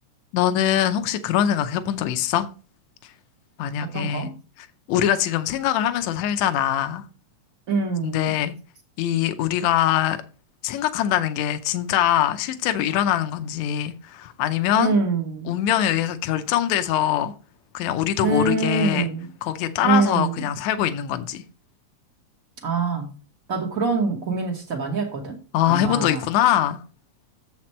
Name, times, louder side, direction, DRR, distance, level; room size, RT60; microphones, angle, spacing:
voice 1, 0.3-2.5 3.6-4.3 4.6-7.0 8.0-8.5 9.0-10.2 10.6-15.0 15.5-17.3 17.7-19.1 19.4-21.4 25.5-26.8, left 11 dB, 75° left, 1.9 m, -23 dB
voice 2, 3.8-4.3 7.7-8.3 14.8-15.6 18.2-19.3 19.8-20.5 22.6-23.1 23.5-25.4 25.7-26.2, right 4 dB, 65° right, 0.8 m, -24 dB
7.4 x 5.9 x 4.3 m
omnidirectional pair, 3.4 m